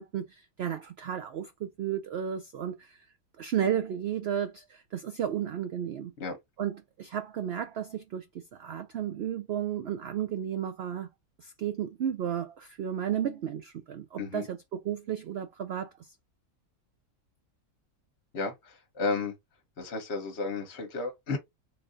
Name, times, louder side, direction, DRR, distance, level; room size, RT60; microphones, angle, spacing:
voice 1, 0.0-3.0 3.4-6.1 6.6-11.1 11.4-15.9, right 9 dB, 70° right, 0.6 m, -33 dB
voice 2, 18.3-19.3 19.8-21.4, left 4 dB, 50° left, 1.1 m, -33 dB
3.8 x 2.6 x 3.7 m
omnidirectional pair, 1.6 m